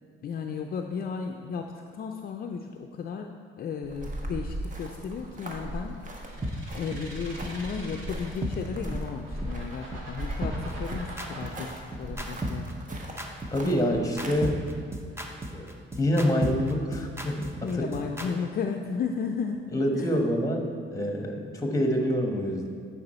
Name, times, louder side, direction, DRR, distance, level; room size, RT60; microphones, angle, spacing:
voice 1, 0.2-3.3 3.6-6.0 6.8-12.7 17.6-20.1, left 6 dB, 50° left, 3 dB, 0.5 m, -34 dB
sound 1, 3.8-14.3, right 1 dB, 40° right, 1.2 m, -38 dB
sound 2, 6.1-8.6 9.1-11.6, right 2 dB, 80° right, 1.5 m, -44 dB
sound 3, 6.4-6.5 6.9-7.0 7.4-7.5 7.9-8.0 8.4-8.5 8.9-9.0 9.4-9.5 9.9-10.0 10.4-18.3, right 1 dB, 15° right, 0.9 m, -34 dB
voice 2, 13.5-14.6 15.5-15.7 16.0-17.8 19.7-22.7, equal, 15° left, 3 dB, 1.2 m, -26 dB
9.4 x 4.9 x 4.2 m, 2.4 s
cardioid pair, 90°, 20 cm